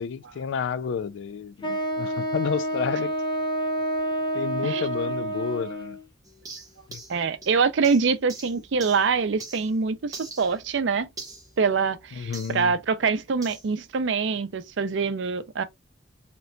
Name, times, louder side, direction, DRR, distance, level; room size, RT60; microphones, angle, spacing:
voice 1, 0.0-3.1 4.3-6.0 6.9-7.0 12.2-12.7, left 6 dB, 70° left, 0.3 m, -30 dB
Wind instrument woodwind instrument, 1.6-6.1, right 1 dB, 25° left, 0.6 m, -28 dB
sound 1, 6.2-9.8 10.1-12.6 13.4-13.7, right 3 dB, 20° right, 0.8 m, -44 dB
voice 2, 7.1-11.1 11.6-15.6, right 5 dB, 70° right, 0.5 m, -25 dB
3.2 x 2.9 x 2.5 m
head